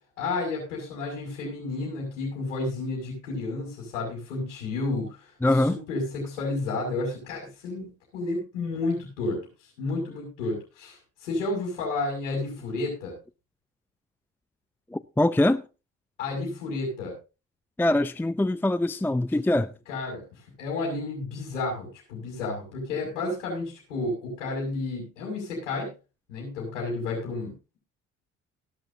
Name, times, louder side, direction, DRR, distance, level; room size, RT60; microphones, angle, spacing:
voice 1, 0.2-9.5 9.8-13.1 16.2-17.1 19.9-20.2 20.6-25.9 26.3-27.5, left 3 dB, 85° left, 5.9 m, -31 dB
voice 2, 5.4-5.8 14.9-15.6 17.8-19.7, left 1 dB, 5° left, 0.5 m, -23 dB
18.0 x 12.0 x 2.8 m
hypercardioid pair, 50°, 36 cm